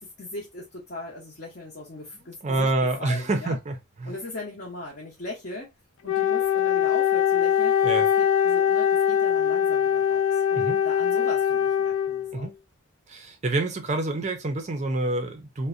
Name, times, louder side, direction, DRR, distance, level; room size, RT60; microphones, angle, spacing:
voice 1, 0.0-2.7 3.0-3.6 4.0-5.7 6.0-7.7 8.2-12.5, left 2 dB, 45° left, 0.6 m, -39 dB
voice 2, 2.4-4.1 7.8-8.1 10.5-10.8 12.3-12.5 13.1-15.7, right 2 dB, 30° right, 0.4 m, -27 dB
Wind instrument woodwind instrument, 6.0-12.4, left 9 dB, 80° left, 0.3 m, -22 dB
2.5 x 2.0 x 2.4 m
head